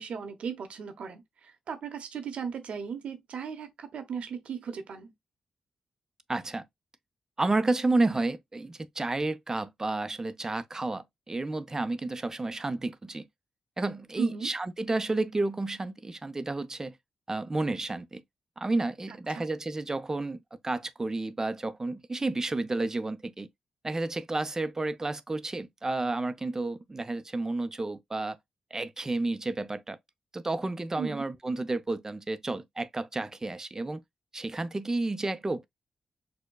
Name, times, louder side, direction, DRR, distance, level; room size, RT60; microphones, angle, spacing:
voice 1, 0.0-5.1 14.2-14.5 19.3-19.4 31.0-31.3, right 6 dB, 75° right, 0.9 m, -37 dB
voice 2, 6.3-6.7 7.4-13.3 13.8-17.0 17.3-18.2 18.6-20.4 20.6-23.5 23.8-28.4 28.7-30.0 30.3-34.0 34.3-35.7, right 2 dB, 25° right, 0.6 m, -31 dB
6.4 x 2.2 x 2.3 m
cardioid pair, 60°, 2 cm